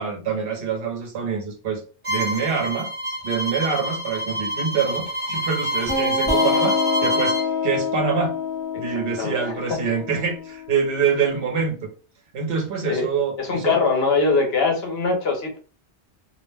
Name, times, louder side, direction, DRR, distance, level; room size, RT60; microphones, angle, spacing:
voice 1, 0.0-1.8 2.1-7.4 7.6-8.4 8.8-11.9 12.3-13.8, right 6 dB, 60° right, 1.0 m, -25 dB
Bowed string instrument, 2.0-7.5, right 1 dB, 30° right, 1.0 m, -27 dB
sound 1, 5.9-11.2, left 5 dB, 20° left, 0.9 m, -26 dB
voice 2, 9.2-9.5 12.8-13.0 13.4-15.6, left 4 dB, 65° left, 1.0 m, -22 dB
2.5 x 2.1 x 3.2 m
omnidirectional pair, 1.1 m